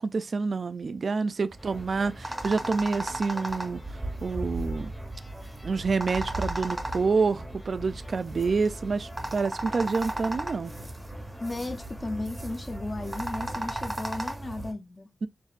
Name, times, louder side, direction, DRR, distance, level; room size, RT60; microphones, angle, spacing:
voice 1, 0.0-4.9 5.6-10.7, right 4 dB, 50° right, 0.4 m, -28 dB
sound 1, 1.5-14.7, right 1 dB, 15° right, 0.7 m, -36 dB
sound 2, 1.6-13.9, equal, 10° left, 0.9 m, -49 dB
voice 2, 11.4-15.1, left 2 dB, 30° left, 0.6 m, -35 dB
7.1 x 2.6 x 2.4 m
wide cardioid pair, 135°, 0 cm